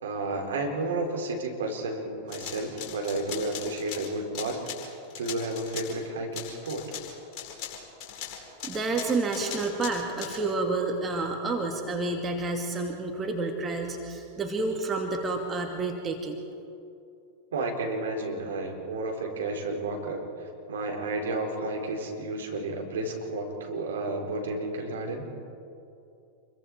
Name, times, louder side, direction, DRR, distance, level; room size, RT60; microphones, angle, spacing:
voice 1, 0.0-4.9 5.2-6.8 17.5-20.3 20.7-25.3, right 2 dB, 65° right, 1 dB, 4.1 m, -32 dB
sound 1, 2.3-6.0 6.3-10.4, left 9 dB, 40° left, 4.8 m, -39 dB
voice 2, 8.6-16.4, right 3 dB, 20° right, 2 dB, 2.3 m, -29 dB
28.5 x 23.0 x 4.7 m, 2.6 s
figure-of-eight pair, 90°, 0 cm